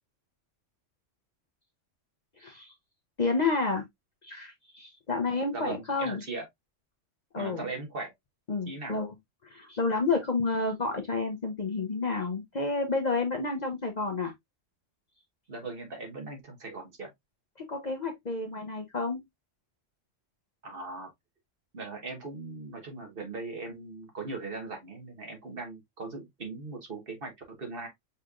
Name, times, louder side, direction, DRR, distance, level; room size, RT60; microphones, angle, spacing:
voice 1, 2.4-2.7 3.2-3.8 4.2-6.2 7.3-7.6 8.5-9.1 9.4-14.3 17.7-19.2, left 3 dB, 40° left, 0.8 m, -30 dB
voice 2, 5.5-6.4 7.3-8.1 8.7-9.0 15.5-17.1 20.6-21.1 21.7-27.9, right 3 dB, 50° right, 1.5 m, -39 dB
5.6 x 3.2 x 2.4 m
omnidirectional pair, 1.3 m